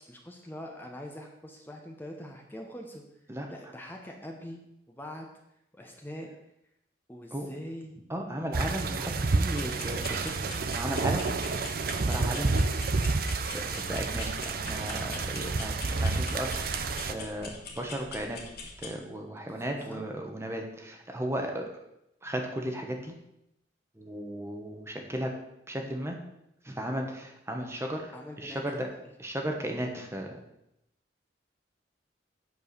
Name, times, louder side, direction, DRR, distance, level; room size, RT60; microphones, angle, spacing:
voice 1, 0.1-3.0 3.5-4.6 4.9-5.3 5.7-6.3 7.1-8.1 15.8-16.2 19.6-20.0 28.1-29.0, left 1 dB, 10° left, 1 dB, 1.0 m, -43 dB
voice 2, 8.1-11.2 11.9-12.5 13.4-18.4 18.8-21.6 22.2-23.1 23.9-25.3 25.7-26.2 26.6-28.9 29.2-30.4, right 1 dB, 15° right, 2 dB, 1.1 m, -35 dB
sound 1, 8.5-17.1, right 3 dB, 60° right, 0.6 m, -29 dB
sound 2, 9.5-18.9, left 3 dB, 60° left, 1.6 m, -44 dB
8.3 x 4.7 x 6.7 m, 0.83 s
head